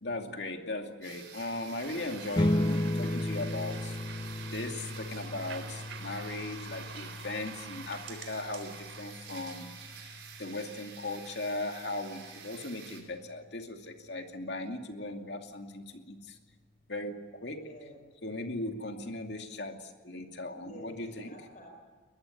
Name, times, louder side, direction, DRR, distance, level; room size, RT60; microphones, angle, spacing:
voice 1, 0.0-4.0 4.5-9.7 10.4-16.4 16.9-17.1 17.4-17.6 18.2-21.3, left 2 dB, 60° left, 4 dB, 2.6 m, -38 dB
sound 1, 1.0-13.0, right 6 dB, 65° right, 6.5 m, -49 dB
sound 2, 1.8-9.0, right 5 dB, 85° right, 3.7 m, -47 dB
sound 3, 2.3-13.1, left 1 dB, 20° left, 0.6 m, -36 dB
voice 2, 17.4-18.0 20.6-21.8, right 1 dB, 40° left, 0 dB, 5.3 m, -49 dB
22.0 x 20.5 x 9.9 m, 1.4 s
head